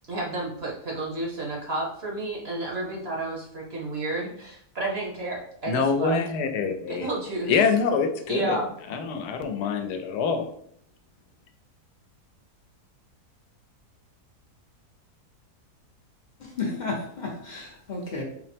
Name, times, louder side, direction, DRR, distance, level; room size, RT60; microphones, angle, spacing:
voice 1, 0.1-6.3 6.9-7.6 8.3-8.7, right 2 dB, 50° right, -2 dB, 0.9 m, -31 dB
voice 2, 5.7-7.1 7.5-8.6 8.9-10.5, left 5 dB, 80° left, 6 dB, 1.1 m, -25 dB
voice 3, 16.4-18.2, left 3 dB, 50° left, -1 dB, 0.5 m, -32 dB
4.1 x 2.0 x 4.2 m, 0.66 s
omnidirectional pair, 1.7 m